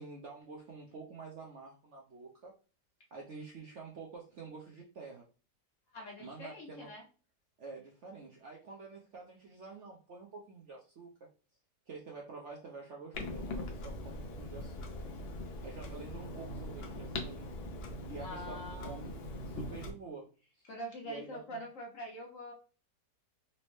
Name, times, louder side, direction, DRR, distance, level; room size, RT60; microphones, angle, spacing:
voice 1, 0.0-2.5 3.1-5.3 6.2-6.9 7.6-11.1 11.9-15.1 15.6-17.5 18.1-20.3 20.5-20.7 21.0-21.6, right 4 dB, 65° right, -1 dB, 0.7 m, -48 dB
voice 2, 5.9-7.0 18.2-19.0 20.7-22.5, equal, 60° left, 0 dB, 0.9 m, -44 dB
Clock, 13.1-19.9, left 1 dB, 90° left, 0.5 m, -41 dB
4.2 x 2.0 x 3.1 m, 0.36 s
omnidirectional pair, 1.9 m